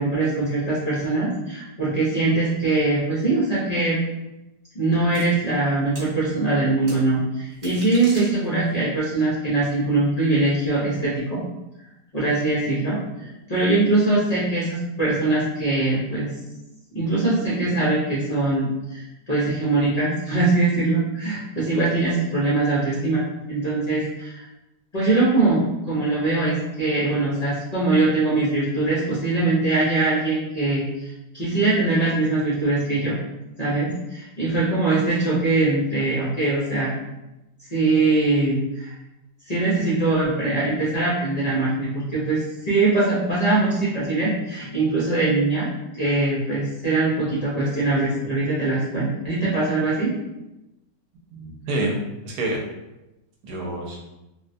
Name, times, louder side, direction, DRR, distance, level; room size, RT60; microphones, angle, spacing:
voice 1, 0.0-4.0 4.7-11.4 12.1-16.3 16.9-24.5 24.9-25.6 25.9-33.2 33.6-36.9 37.7-38.9 39.4-45.7 45.9-50.1, right 2 dB, 75° left, -8 dB, 0.3 m, -22 dB
sound 1, 5.1-5.2 5.9-6.1 6.9-7.0 7.5-8.7, right 2 dB, 45° right, 0.9 m, -39 dB
voice 2, 51.3-52.6 53.4-54.0, right 1 dB, 70° right, -1 dB, 1.2 m, -27 dB
3.7 x 2.2 x 2.6 m, 0.96 s
omnidirectional pair, 1.9 m